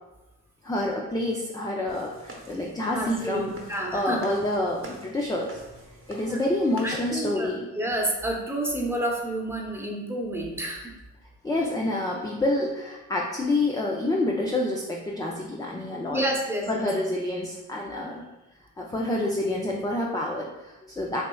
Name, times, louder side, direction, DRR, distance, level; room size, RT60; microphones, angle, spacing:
voice 1, 0.6-3.5 3.9-5.6 6.1-7.7 11.4-16.2 16.7-18.2 18.8-21.2, left 1 dB, 10° left, -2 dB, 0.4 m, -28 dB
sound 1, 1.9-7.4, right 1 dB, 30° right, 0.9 m, -47 dB
voice 2, 2.9-4.2 6.2-6.4 6.8-7.5 7.8-10.9 16.1-16.9 18.9-19.2, right 1 dB, 5° right, -1 dB, 0.8 m, -29 dB
4.2 x 3.0 x 2.3 m, 1.0 s
supercardioid pair, 50°, 41 cm